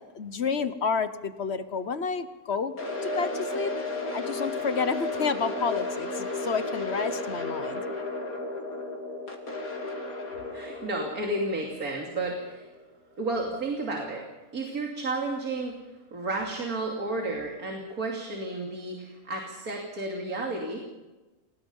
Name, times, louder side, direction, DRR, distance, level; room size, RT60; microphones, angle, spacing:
voice 1, 0.0-2.7 3.0-3.7 4.1-7.8, left 5 dB, 50° left, 12 dB, 1.3 m, -30 dB
sound 1, 2.8-12.8, left 2 dB, 80° left, 3.3 m, -34 dB
voice 2, 10.5-12.7 13.2-14.2 14.5-15.7 16.1-20.8, right 2 dB, 90° right, 0 dB, 3.2 m, -32 dB
28.5 x 19.0 x 5.6 m, 1.1 s
omnidirectional pair, 1.5 m